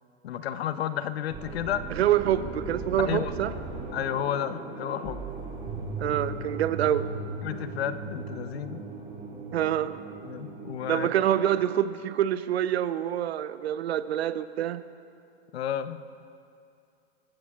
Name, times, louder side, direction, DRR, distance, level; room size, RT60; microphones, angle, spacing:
voice 1, 0.2-1.8 3.0-3.3 3.9-5.3 7.4-8.8 10.2-11.1 15.5-16.2, left 10 dB, 75° left, 12 dB, 0.9 m, -32 dB
sound 1, 1.3-11.8, right 3 dB, 20° right, 2.5 m, -38 dB
voice 2, 1.9-3.5 6.0-7.1 9.5-9.9 10.9-14.8, right 11 dB, 75° right, 12 dB, 0.8 m, -26 dB
26.0 x 15.5 x 2.4 m, 2.5 s
hypercardioid pair, 120°, 32 cm